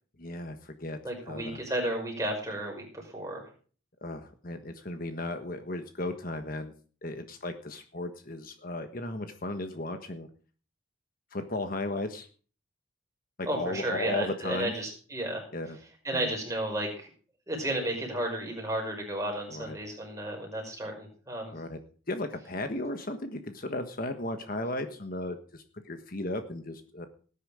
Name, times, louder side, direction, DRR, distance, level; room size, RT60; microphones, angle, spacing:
voice 1, 0.2-1.0 1.3-1.6 4.0-6.7 7.0-10.3 11.3-12.3 13.4-14.7 15.5-15.8 16.1-16.3 19.5-19.8 21.5-21.8 22.1-27.1, left 2 dB, 45° left, 7 dB, 1.4 m, -35 dB
voice 2, 1.0-3.5 13.5-15.5 16.0-17.1 17.5-21.5, right 1 dB, 15° right, 1 dB, 5.5 m, -33 dB
18.5 x 10.0 x 5.0 m, 0.40 s
head